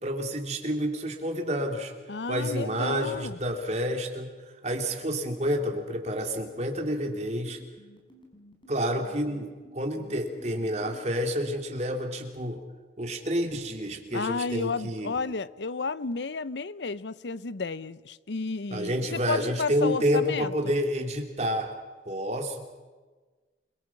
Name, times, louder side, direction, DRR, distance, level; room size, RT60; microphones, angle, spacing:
voice 1, 0.0-1.9 2.3-4.3 4.6-7.6 8.7-12.6 13.0-15.1 18.7-21.7 22.1-22.7, equal, 40° right, 2.9 m, -29 dB
voice 2, 2.1-3.4 14.1-20.8, left 4 dB, 90° left, 0.7 m, -32 dB
sound 1, 5.9-11.0, right 1 dB, 30° left, 4.9 m, -55 dB
28.5 x 23.0 x 6.0 m
head